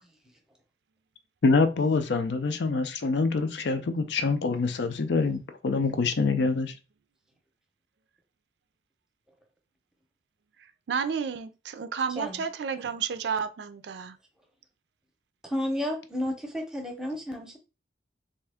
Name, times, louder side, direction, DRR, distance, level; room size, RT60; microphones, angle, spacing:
voice 1, 1.4-6.7, left 4 dB, 75° left, 0.5 m, -25 dB
voice 2, 10.9-14.2, right 6 dB, 70° right, 0.4 m, -31 dB
voice 3, 15.4-17.6, left 1 dB, 5° right, 0.7 m, -32 dB
3.4 x 2.7 x 3.5 m
head